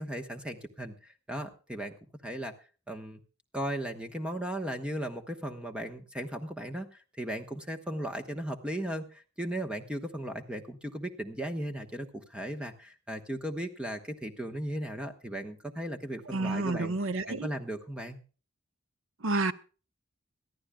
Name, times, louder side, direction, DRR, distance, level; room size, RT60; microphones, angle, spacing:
voice 1, 0.0-1.9 2.2-2.5 2.9-3.2 3.5-16.9 17.3-18.2, right 1 dB, 5° right, 1.3 m, -36 dB
voice 2, 16.3-17.5 19.2-19.5, right 2 dB, 80° right, 0.9 m, -29 dB
22.0 x 14.0 x 2.3 m
head